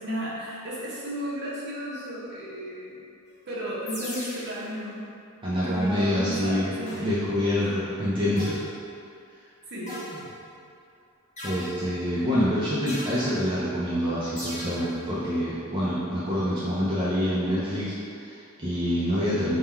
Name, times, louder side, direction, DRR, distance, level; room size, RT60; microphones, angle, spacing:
voice 1, 0.0-3.0 3.5-5.0 5.6-7.2 7.6-7.8 9.7-10.0 12.1-12.4, equal, 50° right, -7 dB, 0.9 m, -34 dB
sound 1, 3.9-4.7 6.9-7.4 8.4-8.9 9.9-10.6 11.4-12.1 12.9-13.4 14.4-14.9, left 1 dB, 30° left, 0.7 m, -39 dB
voice 2, 5.4-8.5 11.4-19.6, equal, 20° right, -9 dB, 0.5 m, -26 dB
3.7 x 2.2 x 4.2 m, 2.5 s
head